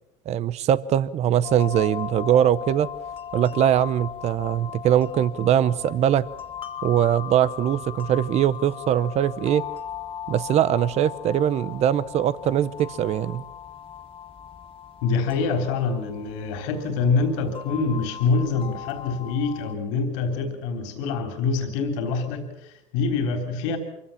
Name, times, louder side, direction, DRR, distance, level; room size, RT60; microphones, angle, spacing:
voice 1, 0.3-2.9 3.3-6.3 6.8-9.6 10.3-13.4, right 10 dB, 45° right, 18 dB, 0.7 m, -22 dB
sound 1, 1.4-19.8, left 9 dB, 35° left, 2.2 m, -38 dB
voice 2, 15.0-23.8, left 4 dB, 80° left, 7 dB, 3.6 m, -25 dB
24.5 x 16.0 x 7.1 m, 0.84 s
supercardioid pair, 100°, 16 cm